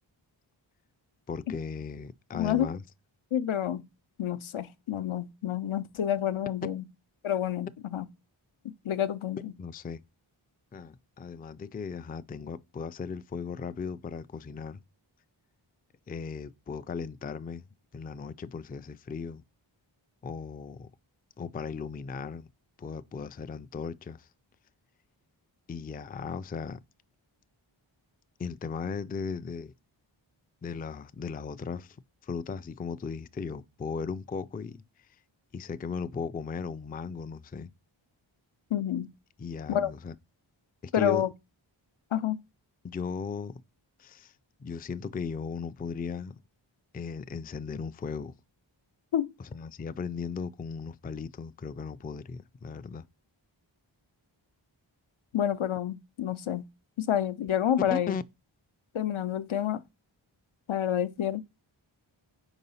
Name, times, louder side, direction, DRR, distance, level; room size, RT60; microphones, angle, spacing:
voice 1, 1.3-2.8 9.6-10.0 10.7-14.8 16.1-17.7 17.9-19.4 20.2-20.9 21.4-22.5 22.8-24.3 25.7-26.8 28.4-29.7 30.6-32.0 32.2-34.8 35.5-37.7 39.4-40.2 40.8-41.2 42.8-43.6 44.0-44.3 44.6-46.4 46.9-48.3 49.4-53.1 57.9-58.2, left 5 dB, 20° left, 0.3 m, -37 dB
voice 2, 2.3-2.7 3.3-3.8 4.2-6.8 7.2-8.0 8.6-9.5 38.7-39.1 39.7-39.9 40.9-41.3 42.1-42.4 49.1-49.3 55.3-56.6 57.0-58.1 58.9-59.8 60.7-61.4, left 10 dB, 75° left, 0.6 m, -28 dB
4.8 x 4.0 x 5.5 m
wide cardioid pair, 40°, 48 cm